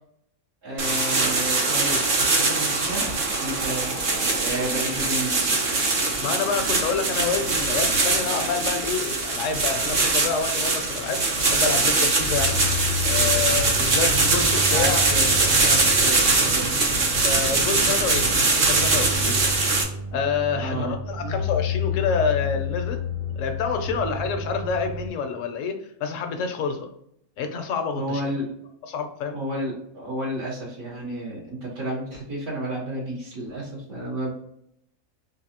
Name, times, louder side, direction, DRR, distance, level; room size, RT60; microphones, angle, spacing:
voice 1, 0.6-5.5 14.6-16.8 20.5-21.3 27.9-28.5 29.3-34.3, right 1 dB, 85° right, -10 dB, 2.1 m, -32 dB
sound 1, 0.8-19.8, right 3 dB, 45° right, 0.7 m, -22 dB
voice 2, 6.2-12.6 13.0-15.0 17.2-19.4 20.1-23.0 23.4-26.9 27.4-28.2 28.9-29.4, left 5 dB, 65° left, 6 dB, 0.9 m, -28 dB
sound 2, 12.2-25.1, left 4 dB, 70° right, 1.2 m, -31 dB
3.9 x 2.6 x 2.8 m, 0.74 s
omnidirectional pair, 1.5 m